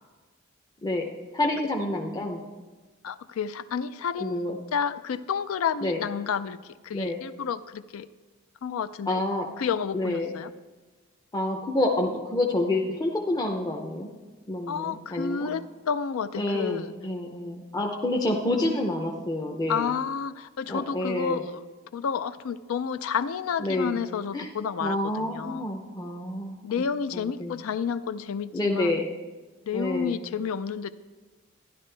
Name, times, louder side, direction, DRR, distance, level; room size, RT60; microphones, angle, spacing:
voice 1, 1.3-2.4 4.2-4.6 5.8-6.0 6.9-7.2 9.1-9.5 9.9-10.3 11.3-14.1 14.5-15.5 16.4-19.9 20.7-21.4 23.6-24.0 24.3-24.5 24.8-26.9 27.1-27.6 28.5-29.1 29.7-30.2, left 1 dB, 20° left, 0 dB, 0.6 m, -28 dB
voice 2, 3.0-6.6 6.8-8.1 8.6-9.2 9.6-10.5 14.7-16.9 17.9-18.0 19.7-21.6 21.9-25.7 26.6-28.9 29.7-30.9, left 7 dB, 80° left, 14 dB, 0.4 m, -30 dB
12.0 x 11.0 x 3.3 m, 1.3 s
head